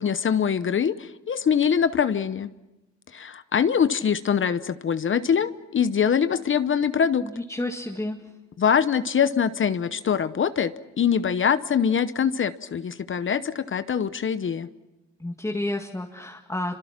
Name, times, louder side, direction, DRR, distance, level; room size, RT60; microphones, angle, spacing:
voice 1, 0.0-2.5 3.1-7.2 8.6-14.7, left 7 dB, 40° left, 13 dB, 0.9 m, -23 dB
voice 2, 7.2-8.3 15.2-16.8, left 1 dB, 10° left, 2 dB, 2.0 m, -31 dB
27.5 x 25.5 x 5.9 m, 1.0 s
cardioid pair, 90°, 30 cm